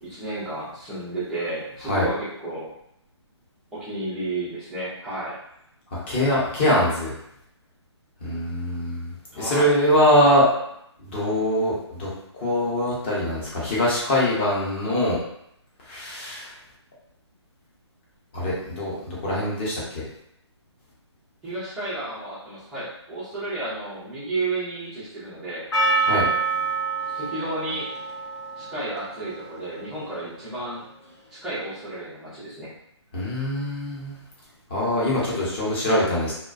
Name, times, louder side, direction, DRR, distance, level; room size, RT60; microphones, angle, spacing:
voice 1, 0.0-2.7 3.7-5.4 9.3-9.7 21.4-25.6 27.1-27.9 28.6-30.8 31.3-32.7, right 2 dB, 5° right, -12 dB, 0.3 m, -32 dB
voice 2, 6.1-7.1 8.2-10.5 11.0-15.2 15.9-16.5 18.3-20.0 26.0-26.3 33.1-34.1 34.7-36.3, left 1 dB, 25° left, -6 dB, 0.7 m, -23 dB
Percussion, 25.7-30.7, right 3 dB, 70° left, 0.7 m, -27 dB
2.3 x 2.1 x 2.4 m, 0.76 s
figure-of-eight pair, 155°, 15 cm